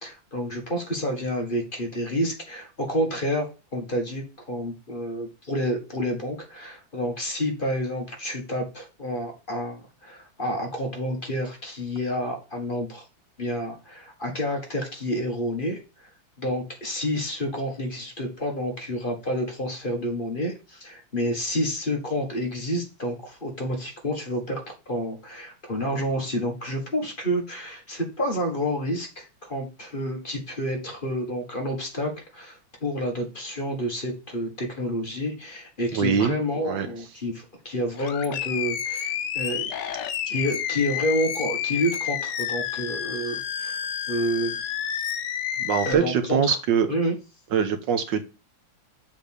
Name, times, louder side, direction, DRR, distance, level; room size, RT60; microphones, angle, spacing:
voice 1, 0.0-13.1 13.4-16.1 16.4-39.7 40.2-43.8 44.1-44.5 45.8-46.6 46.9-47.2, equal, 30° left, 1.7 m, -29 dB
voice 2, 35.9-36.3 36.7-36.9 45.6-46.9 47.5-48.2, right 7 dB, 70° right, 1.5 m, -23 dB
Animal, 38.0-45.9, left 9 dB, 70° left, 1.4 m, -30 dB
7.3 x 3.7 x 6.6 m
omnidirectional pair, 2.1 m